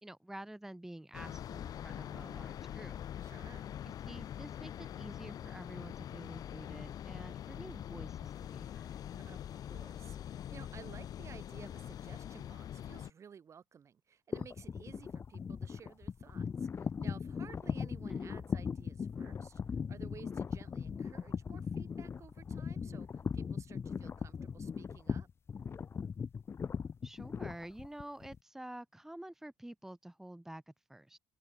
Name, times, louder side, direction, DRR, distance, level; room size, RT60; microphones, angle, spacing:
voice 1, 0.0-3.0 3.8-8.9 18.0-18.3 27.0-31.2, right 1 dB, 5° right, 1.6 m, -49 dB
sound 1, 1.1-13.1, left 10 dB, 50° left, 0.9 m, -44 dB
voice 2, 3.2-3.7 9.1-25.3, right 7 dB, 35° right, 5.1 m, -55 dB
sound 2, 14.3-28.4, left 6 dB, 30° left, 2.1 m, -39 dB
open air
cardioid pair, 135°, 8 cm